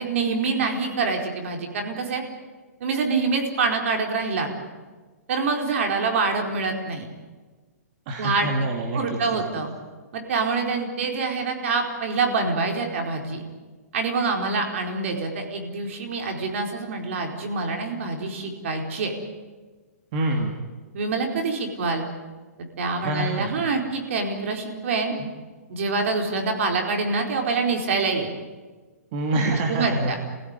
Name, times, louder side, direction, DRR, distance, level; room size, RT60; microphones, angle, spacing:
voice 1, 0.0-2.2 2.8-4.5 5.3-7.1 8.2-8.5 8.9-9.7 10.1-13.4 13.9-19.1 20.9-22.0 22.6-25.1 25.7-28.3 29.7-30.2, right 4 dB, 50° right, 3 dB, 4.5 m, -26 dB
voice 2, 8.1-9.4 20.1-20.6 23.0-23.5 25.2-25.3 29.1-30.2, right 2 dB, 35° right, 1 dB, 2.5 m, -26 dB
27.5 x 16.0 x 9.8 m, 1.4 s
hypercardioid pair, 160°, 9 cm